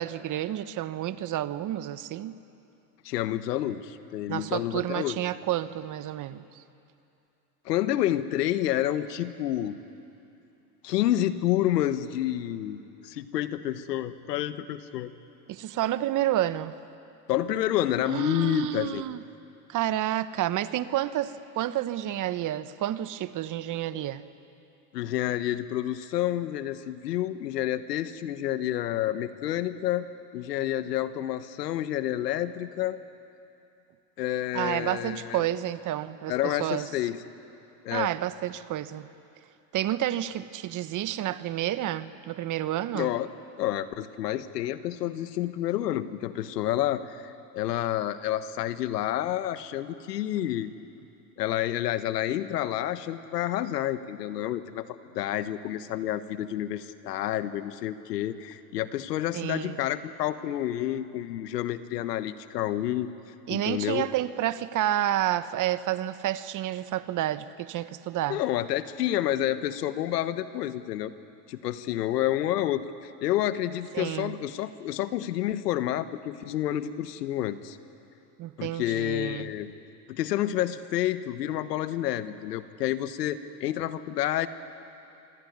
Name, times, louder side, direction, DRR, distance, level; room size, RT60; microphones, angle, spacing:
voice 1, 0.0-2.4 4.3-6.4 15.5-16.7 18.1-19.2 19.7-24.2 34.5-36.9 37.9-39.1 39.7-43.1 59.3-59.8 63.5-68.4 73.9-74.3 78.4-79.5, right 13 dB, 40° right, 13 dB, 1.1 m, -30 dB
voice 2, 3.0-5.2 7.6-9.8 10.8-15.1 17.3-19.0 24.9-30.1 30.3-33.0 34.2-35.4 36.3-37.2 37.8-38.1 42.9-43.3 43.6-50.7 51.4-63.1 63.5-64.1 68.3-71.1 71.5-77.8 78.6-79.7 80.1-84.5, left 12 dB, 90° left, 12 dB, 1.3 m, -29 dB
26.5 x 23.5 x 9.5 m, 2.7 s
supercardioid pair, 105°, 47 cm